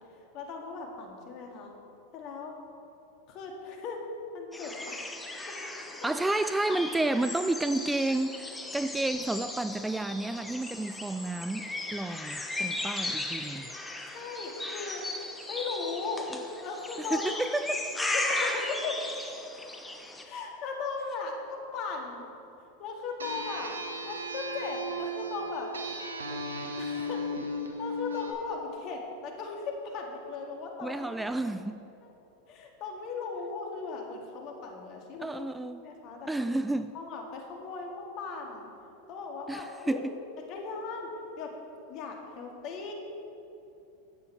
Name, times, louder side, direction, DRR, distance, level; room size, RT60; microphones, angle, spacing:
voice 1, 0.3-1.7 2.1-2.6 3.3-4.0 4.3-5.2 5.5-5.7 6.0-6.1 6.7-7.1 14.1-15.0 15.5-16.4 16.6-17.4 18.0-19.0 20.2-22.3 22.8-23.7 24.1-25.7 26.8-27.2 27.8-31.5 32.0-32.1 32.5-35.4 35.8-36.5 36.9-38.7 39.1-40.0 40.4-41.1 41.4-41.5 41.9-42.9, left 4 dB, 50° left, 1 dB, 2.0 m, -38 dB
sound 1, 4.5-20.2, left 2 dB, 10° left, 1.1 m, -36 dB
voice 2, 6.0-11.6 11.9-13.7 17.0-17.9 30.8-31.8 35.2-35.9 36.3-36.9 39.5-40.1, right 2 dB, 10° right, 10 dB, 0.3 m, -31 dB
sound 2, 23.2-28.3, equal, 90° right, 1.0 m, -36 dB
11.5 x 8.6 x 4.5 m, 2.8 s
hypercardioid pair, 95°, 0 cm